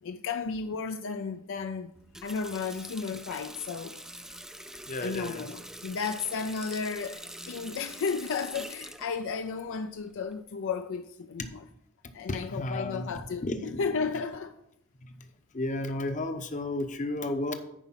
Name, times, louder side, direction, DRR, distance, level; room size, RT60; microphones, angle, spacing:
voice 1, 0.0-1.9 2.2-4.0 5.0-11.6 12.1-13.5 13.8-14.5, left 5 dB, 65° left, 0.5 m, -33 dB
Water tap faucet, 1.9-10.4, right 1 dB, ahead, 0.4 m, -45 dB
voice 2, 4.8-5.4 12.3-13.1 13.4-13.9 15.0-15.2 15.5-17.5, left 1 dB, 35° left, 0.8 m, -33 dB
10.0 x 4.9 x 5.7 m
head